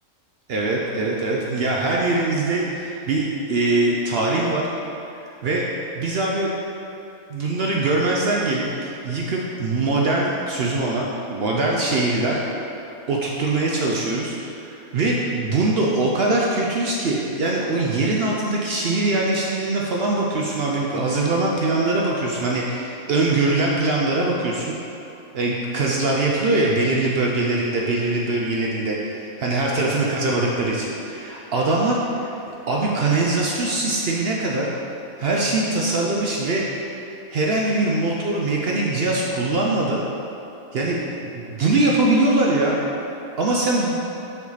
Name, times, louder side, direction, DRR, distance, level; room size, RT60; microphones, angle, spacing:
voice 1, 0.5-4.7 5.4-5.6 6.0-6.5 7.3-12.4 13.1-24.8 25.3-32.4 32.7-34.7 35.2-37.0 37.3-40.0 40.7-42.8 43.4-44.0, right 2 dB, 65° right, -2 dB, 0.6 m, -22 dB
5.7 x 4.7 x 3.9 m, 2.9 s
omnidirectional pair, 1.5 m